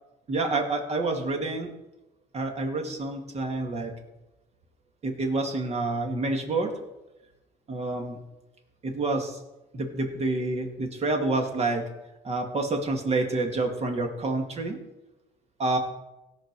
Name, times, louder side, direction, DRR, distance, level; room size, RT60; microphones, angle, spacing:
voice 1, 0.3-1.7 2.3-3.9 5.0-6.7 7.7-8.2 8.8-9.4 9.7-11.8 12.2-14.8 15.6-15.8, right 2 dB, 40° right, 3 dB, 2.1 m, -28 dB
17.0 x 5.8 x 4.7 m, 0.99 s
cardioid pair, 110°, 17 cm